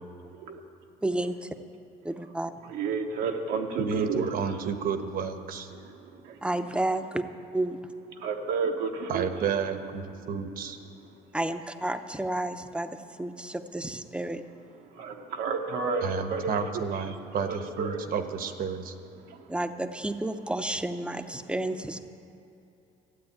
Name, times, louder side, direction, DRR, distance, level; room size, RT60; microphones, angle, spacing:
voice 1, 1.0-1.5 2.0-2.5 6.4-7.2 7.5-7.8 11.3-14.4 19.5-22.0, right 1 dB, 5° right, 9 dB, 0.7 m, -31 dB
voice 2, 2.7-4.7 5.8-6.4 8.1-9.4 14.9-18.0 19.3-19.5, right 5 dB, 85° right, 3 dB, 1.2 m, -32 dB
voice 3, 3.8-5.7 9.1-10.8 16.0-18.9, right 6 dB, 60° right, 8 dB, 1.1 m, -31 dB
13.0 x 8.5 x 8.7 m, 2.8 s
cardioid pair, 110°, 17 cm